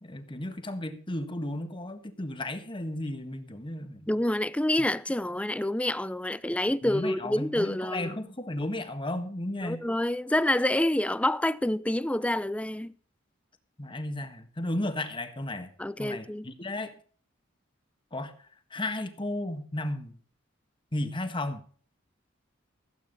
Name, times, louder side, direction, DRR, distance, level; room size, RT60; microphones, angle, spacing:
voice 1, 0.0-4.1 6.8-9.8 13.8-15.7 16.0-16.9 18.1-18.3 18.7-20.1 20.9-21.6, left 1 dB, 25° left, 1.6 m, -34 dB
voice 2, 4.1-8.3 9.6-12.9 15.8-16.5, left 1 dB, 5° left, 0.5 m, -27 dB
16.0 x 9.0 x 5.4 m
head